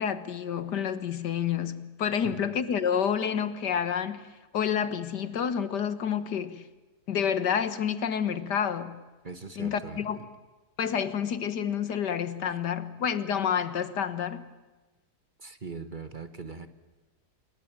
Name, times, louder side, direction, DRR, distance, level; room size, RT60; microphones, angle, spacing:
voice 1, 0.0-4.2 4.5-6.6 7.1-9.0 9.6-10.2 10.8-14.5, left 8 dB, 85° left, 2.0 m, -29 dB
voice 2, 2.1-2.4 9.2-10.3 12.6-12.7 15.4-16.7, right 4 dB, 30° right, 1.4 m, -41 dB
27.0 x 23.0 x 8.9 m
omnidirectional pair, 1.8 m